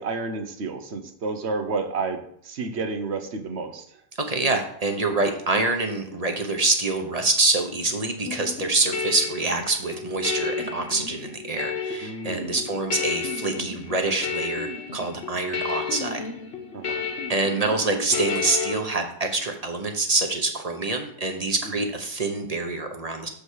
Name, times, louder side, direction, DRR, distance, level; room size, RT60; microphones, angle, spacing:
voice 1, 0.0-4.0 12.0-12.6 16.7-17.0 21.6-21.8, right 4 dB, 75° right, 7 dB, 1.3 m, -31 dB
voice 2, 4.2-16.2 17.3-23.3, right 3 dB, 35° right, 4 dB, 1.1 m, -26 dB
sound 1, 8.3-18.8, left 5 dB, 70° left, 1.3 m, -32 dB
7.0 x 5.1 x 6.4 m, 0.66 s
omnidirectional pair, 1.1 m